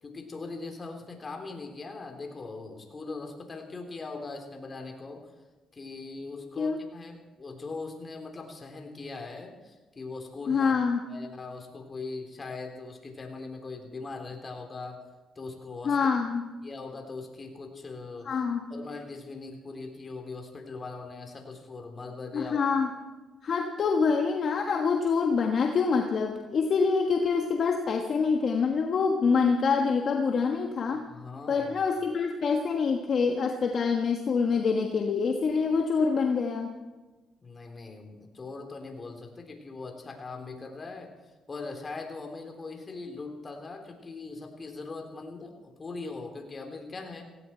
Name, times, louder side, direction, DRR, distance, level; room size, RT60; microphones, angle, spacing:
voice 1, 0.0-5.3 5.7-10.7 11.1-15.0 15.4-16.0 16.6-18.3 18.7-22.6 31.1-31.8 37.4-41.1 41.5-47.2, left 3 dB, 35° left, 3 dB, 3.5 m, -40 dB
voice 2, 10.5-11.0 15.8-16.4 18.2-18.6 22.3-22.9 23.4-31.0 31.5-36.7, left 5 dB, 55° left, 3 dB, 1.5 m, -26 dB
17.5 x 17.0 x 4.5 m, 1.2 s
cardioid pair, 75°, 0 cm